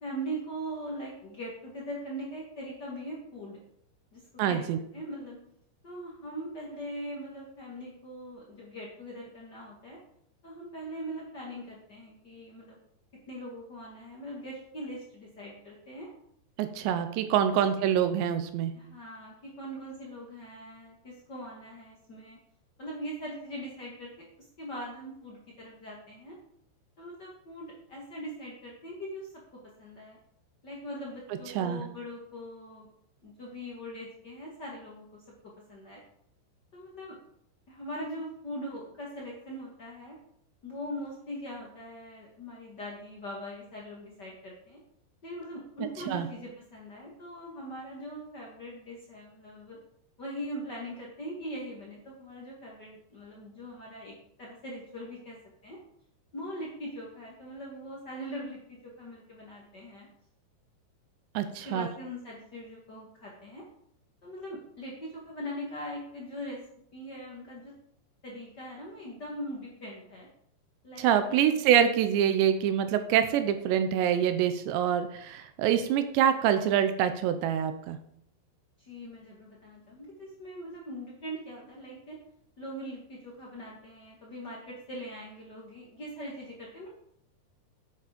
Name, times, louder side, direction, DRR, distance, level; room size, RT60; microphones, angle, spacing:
voice 1, 0.0-3.6 4.1-4.2 4.5-5.4 5.8-10.0 10.4-12.8 13.3-16.1 18.7-22.4 22.8-24.1 24.6-26.4 27.0-30.2 30.6-32.9 33.2-36.0 36.7-37.2 37.7-40.2 40.6-44.8 45.2-49.8 50.2-55.4 55.6-55.8 56.3-60.1 61.6-63.6 64.2-66.6 66.9-67.7 68.2-70.3 70.8-71.6 78.8-82.2 82.6-86.9, equal, 70° left, -3 dB, 1.0 m, -41 dB
voice 2, 4.4-4.8 16.6-18.7 31.6-31.8 46.1-46.3 61.3-61.9 71.0-78.0, right 9 dB, 80° right, 9 dB, 2.8 m, -25 dB
9.2 x 9.1 x 5.2 m, 0.70 s
omnidirectional pair, 5.3 m